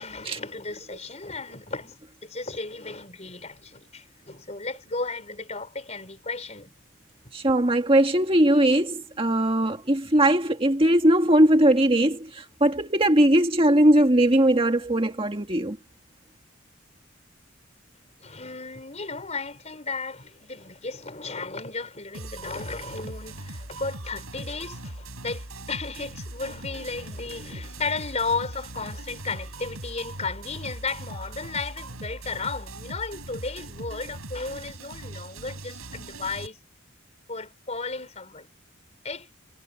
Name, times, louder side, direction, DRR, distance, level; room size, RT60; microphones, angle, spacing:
voice 1, 0.0-6.7 18.2-36.6 37.3-38.5 39.0-39.3, left 4 dB, 30° left, 5.0 m, -34 dB
voice 2, 7.3-15.8, right 1 dB, 25° right, 1.8 m, -20 dB
sound 1, 22.1-36.5, right 2 dB, 85° right, 6.1 m, -40 dB
head